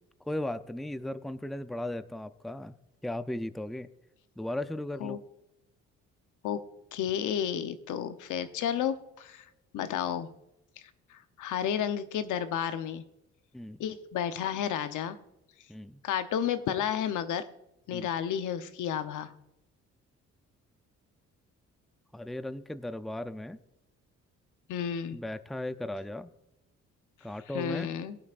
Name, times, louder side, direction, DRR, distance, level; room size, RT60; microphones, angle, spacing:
voice 1, 0.2-2.7 3.0-3.9 4.4-5.2 13.5-13.8 15.7-16.0 17.9-18.1 22.1-23.6 25.1-26.3 27.2-27.9, left 1 dB, ahead, 11 dB, 0.5 m, -36 dB
voice 2, 6.9-10.3 10.8-13.0 13.8-15.2 16.0-17.4 17.9-19.3 24.7-25.2 27.5-28.2, left 9 dB, 80° left, 10 dB, 0.9 m, -32 dB
21.5 x 8.4 x 2.5 m, 0.90 s
cardioid pair, 90°, 30 cm